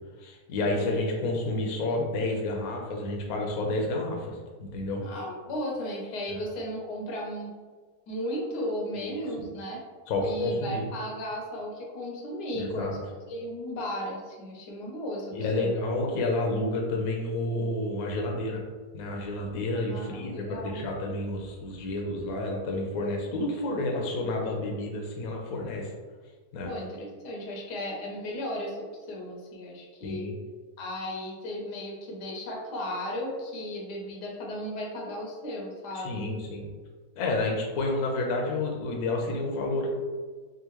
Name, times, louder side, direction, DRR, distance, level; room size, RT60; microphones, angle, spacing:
voice 1, 0.2-5.0 6.3-6.4 9.0-9.2 10.1-10.8 12.5-13.0 15.3-18.6 18.9-25.9 26.5-26.7 30.0-30.4 35.9-36.7 37.2-39.9, left 2 dB, 70° left, 1 dB, 1.0 m, -30 dB
voice 2, 5.0-7.5 8.1-9.8 10.2-13.0 13.3-15.7 19.9-20.9 26.6-30.3 30.8-36.2, equal, 85° left, -1 dB, 1.4 m, -35 dB
3.6 x 2.5 x 3.0 m, 1.4 s
omnidirectional pair, 1.7 m